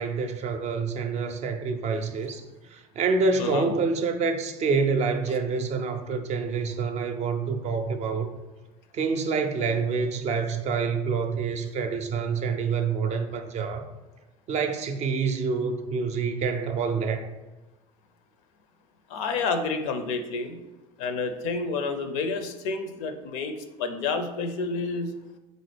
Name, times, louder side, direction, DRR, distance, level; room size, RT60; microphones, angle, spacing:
voice 1, 0.0-2.4 2.7-8.3 8.9-13.9 14.5-17.3, right 5 dB, 40° right, 7 dB, 0.5 m, -27 dB
voice 2, 3.4-3.7 19.1-20.6 21.0-23.5 23.8-25.1, left 4 dB, 65° left, 8 dB, 0.5 m, -29 dB
4.0 x 3.8 x 3.2 m, 1.1 s
figure-of-eight pair, 65°, 18 cm